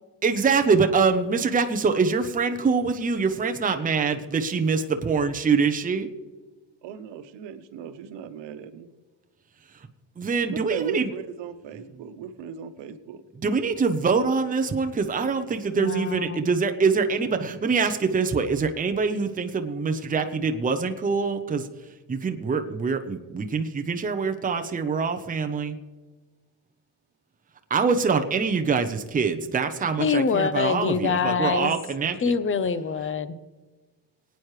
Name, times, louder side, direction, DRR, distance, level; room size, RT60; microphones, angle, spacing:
voice 1, 0.2-6.1 10.2-11.1 13.4-21.7 22.1-25.7 27.7-32.2, right 5 dB, 20° right, 6 dB, 0.8 m, -24 dB
voice 2, 6.8-8.9 10.5-13.2, right 7 dB, 80° right, 10 dB, 1.2 m, -36 dB
voice 3, 15.8-16.4 30.0-31.7 32.2-33.4, left 5 dB, 30° left, 13 dB, 0.8 m, -25 dB
22.5 x 9.2 x 3.3 m, 1.3 s
cardioid pair, 140°, 43 cm